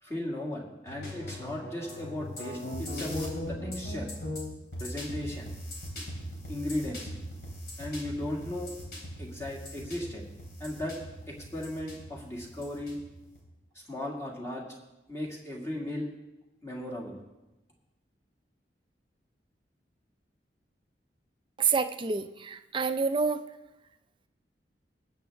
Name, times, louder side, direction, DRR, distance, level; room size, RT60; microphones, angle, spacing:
voice 1, 0.0-4.1 4.8-5.5 6.5-7.1 7.8-8.7 9.2-10.2 10.6-11.0 11.3-13.0 13.7-14.6 15.1-16.1 16.6-17.2, left 1 dB, 15° left, -2 dB, 1.9 m, -36 dB
sound 1, 0.9-13.4, equal, 60° left, 3.4 m, -39 dB
voice 2, 21.6-23.4, right 5 dB, 30° right, 9 dB, 0.5 m, -28 dB
21.0 x 8.0 x 3.5 m, 1.0 s
head